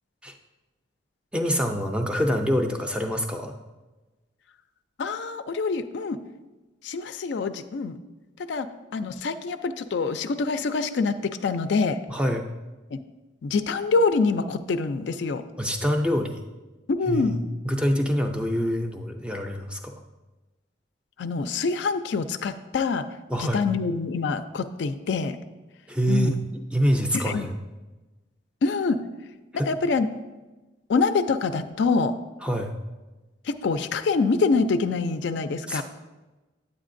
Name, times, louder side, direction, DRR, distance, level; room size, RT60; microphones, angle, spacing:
voice 1, 1.3-3.6 12.1-12.4 15.6-16.4 17.1-19.8 23.3-23.7 25.9-26.4 26.7-27.5 29.5-29.7 32.4-32.8 35.7-35.8, equal, 5° right, 4 dB, 0.4 m, -25 dB
voice 2, 5.0-6.2 6.8-8.0 8.5-8.7 8.9-12.0 12.9-13.0 13.4-15.4 16.9-17.4 21.2-23.0 23.4-25.4 26.1-26.3 27.1-27.5 28.6-29.0 29.7-30.1 30.9-32.1 33.5-35.8, left 4 dB, 60° left, 10 dB, 0.4 m, -25 dB
8.9 x 8.1 x 2.5 m, 1.2 s
head